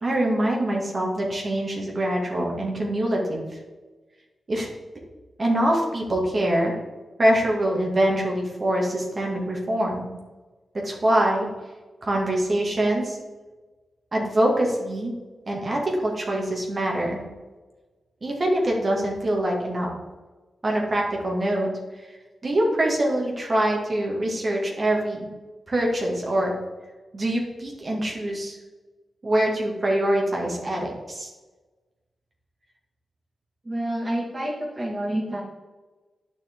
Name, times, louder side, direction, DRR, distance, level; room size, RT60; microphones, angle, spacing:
voice 1, 0.0-3.4 4.5-4.7 5.4-6.7 7.2-10.1 10.7-11.5 12.0-13.2 14.1-15.1 15.5-17.2 18.2-19.9 20.6-21.7 22.0-22.1 22.4-25.3 25.7-26.5 27.1-28.6 29.2-31.3, right 1 dB, 45° right, -1 dB, 2.3 m, -24 dB
voice 2, 33.7-35.4, right 1 dB, 30° right, -3 dB, 2.1 m, -28 dB
9.5 x 6.2 x 3.8 m, 1.2 s
cardioid pair, 60°, 0 cm